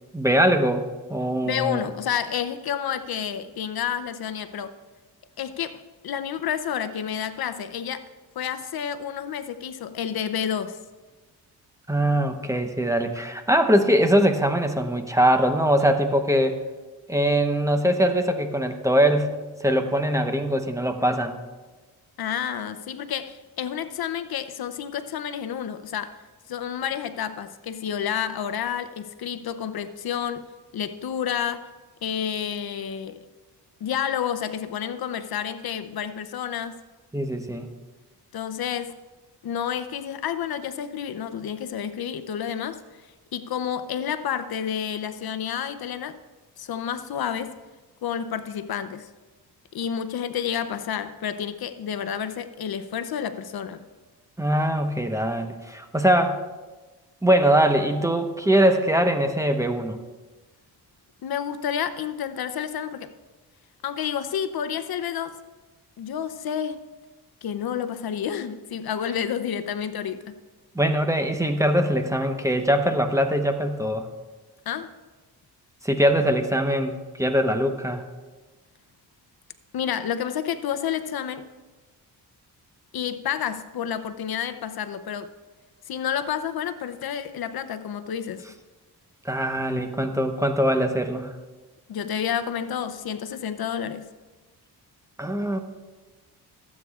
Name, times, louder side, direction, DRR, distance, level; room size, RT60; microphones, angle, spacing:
voice 1, 0.1-1.9 11.9-16.6 17.1-19.3 19.6-21.4 37.1-37.7 54.4-56.4 57.2-60.0 70.7-74.1 75.8-78.0 89.2-91.3 95.2-95.6, equal, 10° right, 6 dB, 0.9 m, -22 dB
voice 2, 1.4-4.7 5.4-8.0 8.4-10.8 22.2-26.2 26.5-30.4 30.7-31.7 32.0-33.2 33.8-36.7 38.3-38.9 39.4-43.1 43.3-46.2 46.6-47.5 48.0-49.1 49.7-53.8 61.2-63.1 63.8-65.4 66.0-66.8 67.4-70.3 74.7-74.9 79.7-81.4 82.9-85.3 85.9-88.4 91.9-94.1, left 8 dB, 65° left, 11 dB, 0.7 m, -30 dB
24.0 x 8.5 x 2.4 m, 1.3 s
cardioid pair, 80°, 40 cm